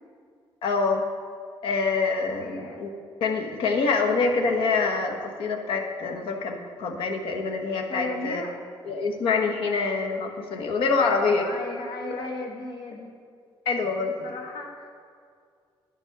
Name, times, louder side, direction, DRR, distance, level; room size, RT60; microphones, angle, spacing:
voice 1, 0.6-1.0 1.6-2.9 3.2-8.4 8.9-11.5 13.6-14.1, left 4 dB, 75° left, 3 dB, 1.2 m, -25 dB
voice 2, 2.4-2.8 7.9-8.6 11.0-13.1 14.0-14.9, left 2 dB, 55° left, 0 dB, 1.7 m, -36 dB
10.5 x 7.4 x 5.9 m, 2.2 s
cardioid pair, 175°, 9 cm